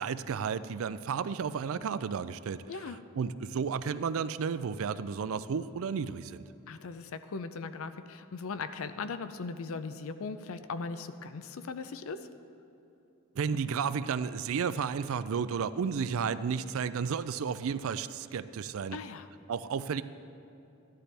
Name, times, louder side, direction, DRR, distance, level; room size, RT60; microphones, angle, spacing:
voice 1, 0.0-2.6 3.2-6.4 13.4-19.0 19.5-20.0, right 6 dB, 70° right, 14 dB, 0.4 m, -32 dB
voice 2, 2.7-3.0 6.7-12.3 18.9-19.3, left 4 dB, 70° left, 11 dB, 0.5 m, -39 dB
13.5 x 11.5 x 3.4 m, 2.8 s
head